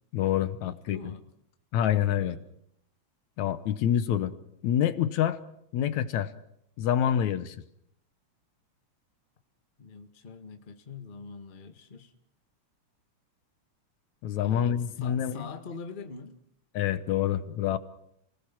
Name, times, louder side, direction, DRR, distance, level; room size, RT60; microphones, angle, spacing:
voice 1, 0.1-1.1 1.7-2.4 3.4-4.3 4.6-5.4 5.7-6.3 6.8-7.6 14.2-15.5 16.7-17.8, left 10 dB, 75° left, 12 dB, 2.3 m, -27 dB
voice 2, 0.6-1.2 2.2-2.4 9.8-12.1 14.4-16.4, left 5 dB, 25° left, 6 dB, 1.2 m, -43 dB
29.5 x 20.0 x 6.0 m, 0.72 s
omnidirectional pair, 3.4 m